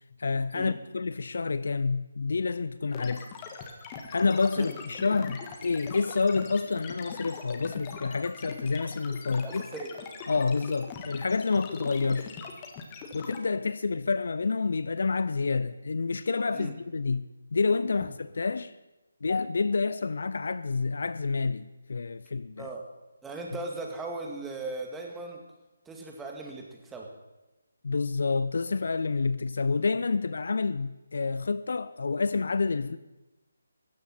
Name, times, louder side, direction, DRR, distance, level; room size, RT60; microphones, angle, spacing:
voice 1, 0.2-3.2 4.1-9.6 10.3-12.4 13.1-17.3 17.5-18.7 19.2-22.7 27.8-33.0, left 4 dB, 60° left, 0.5 m, -28 dB
sound 1, 2.9-13.4, left 5 dB, 20° left, 1.6 m, -42 dB
voice 2, 9.3-10.0 16.5-16.7 22.6-22.9 23.2-25.4 25.9-27.1, right 3 dB, 5° right, 2.0 m, -38 dB
17.0 x 14.0 x 4.3 m
figure-of-eight pair, 150°, 0 cm